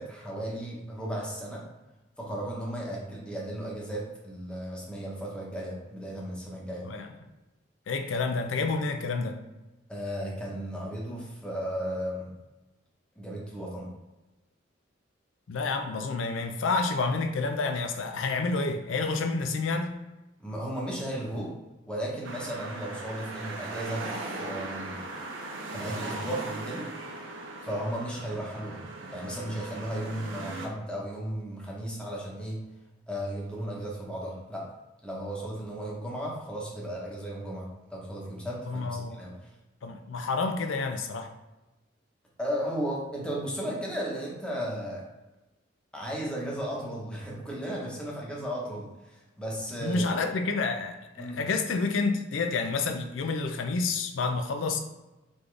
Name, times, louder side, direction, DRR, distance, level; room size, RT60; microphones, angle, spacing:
voice 1, 0.0-1.7 2.2-6.9 9.9-12.3 13.2-13.9 20.4-21.5 21.9-25.0 25.7-26.9 27.6-28.8 29.1-32.6 33.1-34.7 35.0-39.4 42.4-45.0 45.9-50.1 51.2-51.4, right 1 dB, 5° left, -4 dB, 1.0 m, -35 dB
voice 2, 7.9-9.4 15.5-20.0 38.7-39.2 39.8-41.3 49.8-54.8, left 3 dB, 85° left, 6 dB, 0.4 m, -29 dB
sound 1, 22.2-30.7, right 2 dB, 80° right, 0.7 m, -38 dB
4.0 x 3.5 x 3.3 m, 1.0 s
head